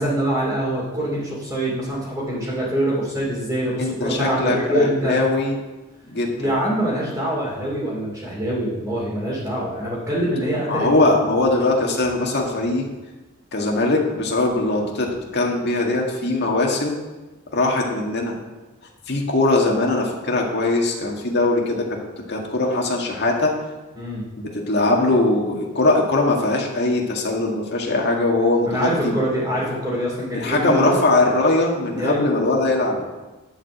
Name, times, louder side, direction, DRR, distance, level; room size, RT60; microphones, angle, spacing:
voice 1, 0.0-5.1 6.4-10.9 23.9-24.2 28.7-31.0 31.9-32.2, right 1 dB, 10° right, -9 dB, 2.6 m, -24 dB
voice 2, 3.8-5.6 6.0-6.5 10.7-12.9 13.5-16.9 17.5-18.4 19.1-22.0 22.3-23.5 24.5-29.1 29.4-29.5 30.3-33.0, left 2 dB, 50° left, -1 dB, 2.0 m, -21 dB
11.5 x 5.0 x 7.8 m, 1.2 s
head